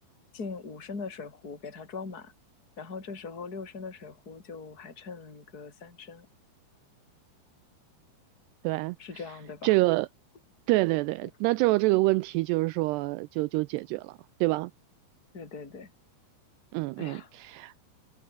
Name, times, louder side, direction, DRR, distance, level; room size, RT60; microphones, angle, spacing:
voice 1, 0.3-2.3 2.8-6.3 9.0-9.7 15.3-15.9 17.0-17.3, left 4 dB, 20° left, 4.6 m, -41 dB
voice 2, 8.6-9.0 9.6-10.1 10.7-14.7 16.7-17.7, right 21 dB, 90° right, 2.4 m, -26 dB
omnidirectional pair, 5.3 m